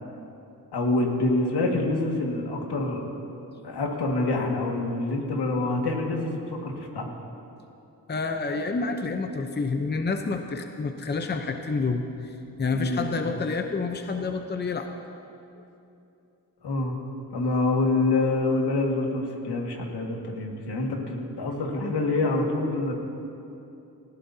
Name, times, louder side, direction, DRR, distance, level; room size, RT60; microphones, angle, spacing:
voice 1, 0.7-3.0 3.6-7.1 12.7-13.2 16.6-17.0 17.3-22.9, left 2 dB, 80° left, 0 dB, 1.9 m, -26 dB
voice 2, 8.1-14.9, left 4 dB, 25° left, 5 dB, 0.7 m, -29 dB
19.5 x 15.0 x 2.8 m, 2.8 s
cardioid pair, 75°, 40 cm